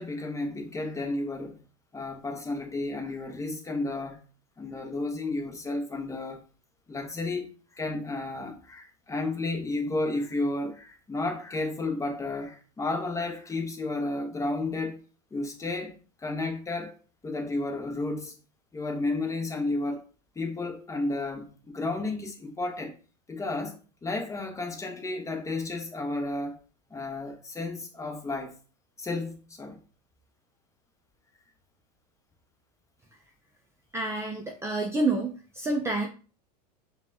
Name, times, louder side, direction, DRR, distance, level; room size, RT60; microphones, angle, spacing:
voice 1, 0.0-1.6 1.9-4.2 4.6-6.4 6.9-15.0 15.3-17.0 17.2-18.3 18.7-20.0 20.4-22.9 23.3-26.6 26.9-28.6 29.0-29.8, left 2 dB, 15° left, 0.9 m, -32 dB
voice 2, 33.9-36.1, right 2 dB, 15° right, 0.5 m, -28 dB
5.2 x 2.4 x 2.7 m
hypercardioid pair, 105°, 21 cm